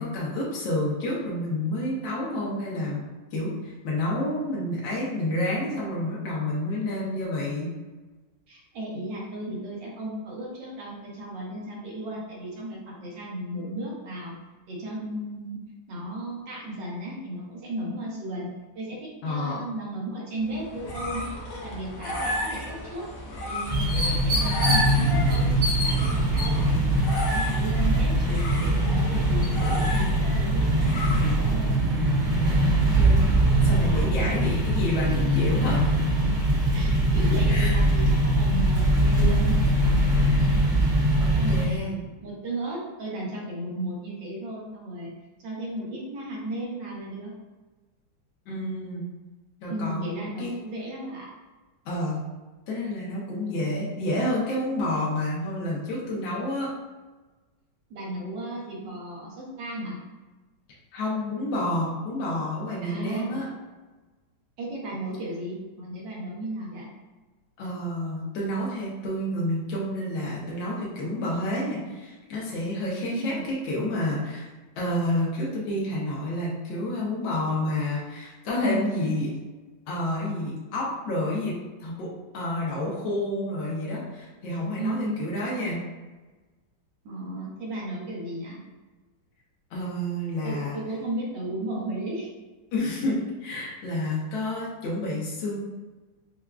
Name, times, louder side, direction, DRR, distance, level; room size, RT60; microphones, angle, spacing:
voice 1, 0.0-3.0 3.3-7.7 19.2-19.7 32.9-33.3 33.6-35.9 37.5-37.8 40.2-40.4 41.2-42.0 48.5-49.0 49.6-50.1 50.4-50.6 51.8-52.2 52.7-56.7 60.9-63.5 67.6-74.5 74.8-79.3 79.9-85.8 89.7-90.8 92.7-95.6, left 1 dB, 80° left, -5 dB, 1.5 m, -29 dB
voice 2, 8.5-14.3 14.7-15.6 15.9-18.5 18.8-21.3 21.6-23.1 23.4-25.5 25.8-26.9 27.2-31.8 33.9-34.5 35.0-35.3 36.7-40.0 41.4-41.9 42.2-45.1 45.4-47.3 49.7-51.3 57.9-60.0 62.8-63.5 64.6-66.9 73.1-73.5 78.6-79.2 84.8-85.3 87.1-88.6 90.4-92.3, right 1 dB, 75° right, -4 dB, 1.6 m, -34 dB
sound 1, 20.5-31.7, left 1 dB, 60° left, 1.0 m, -33 dB
sound 2, 23.7-41.6, right 1 dB, 45° right, 1.5 m, -22 dB
5.9 x 2.3 x 2.3 m, 1.3 s
omnidirectional pair, 2.0 m